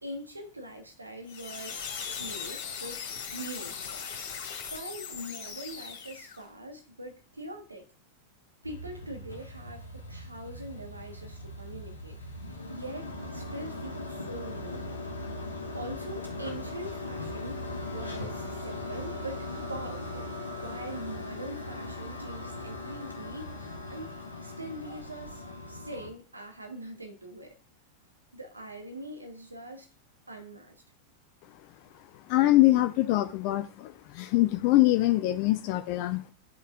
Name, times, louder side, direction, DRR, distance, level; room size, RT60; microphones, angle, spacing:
voice 1, 0.0-3.0 3.3-4.0 4.7-7.9 8.6-12.2 12.7-14.9 15.7-17.6 17.9-24.1 24.4-27.5 28.3-29.9 30.3-30.8, right 1 dB, 80° right, 1.2 m, -42 dB
sound 1, 1.3-6.4, left 6 dB, 65° left, 2.3 m, -39 dB
sound 2, 8.6-26.1, left 2 dB, 80° left, 1.2 m, -39 dB
voice 2, 32.3-36.3, left 17 dB, 45° left, 0.5 m, -24 dB
11.5 x 5.5 x 2.4 m
figure-of-eight pair, 90°, 0 cm